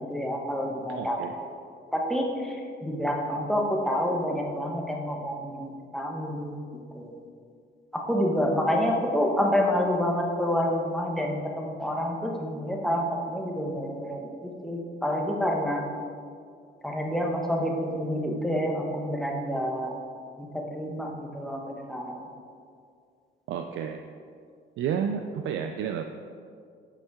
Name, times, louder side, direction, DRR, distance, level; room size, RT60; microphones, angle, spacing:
voice 1, 0.1-1.2 1.9-2.6 2.8-6.6 6.9-7.2 7.9-15.8 16.8-19.9 20.4-22.2, equal, ahead, -1 dB, 1.0 m, -28 dB
voice 2, 1.0-1.3 23.5-24.0 24.8-26.0, right 7 dB, 75° right, 6 dB, 0.4 m, -31 dB
8.0 x 5.4 x 3.6 m, 2.2 s
cardioid pair, 90°, 20 cm